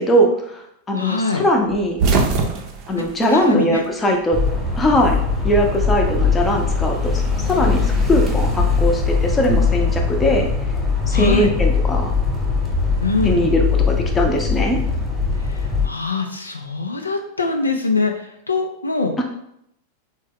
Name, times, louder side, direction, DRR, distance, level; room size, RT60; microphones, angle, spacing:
voice 1, 0.0-2.0 2.9-4.4 4.8-5.2 5.4-10.5 11.1-12.1 13.2-14.8 19.2-19.3, equal, 20° left, 2 dB, 0.6 m, -20 dB
voice 2, 0.9-1.4 3.3-3.8 11.1-11.5 13.0-13.4 15.4-19.2, left 3 dB, 85° left, 3 dB, 0.3 m, -23 dB
sound 1, 1.7-4.2 4.5-5.6 6.8-8.2, right 4 dB, 45° right, 0.5 m, -24 dB
sound 2, 4.3-15.9, left 4 dB, ahead, 1.0 m, -20 dB
3.4 x 2.2 x 3.6 m, 0.75 s
figure-of-eight pair, 90°, 0 cm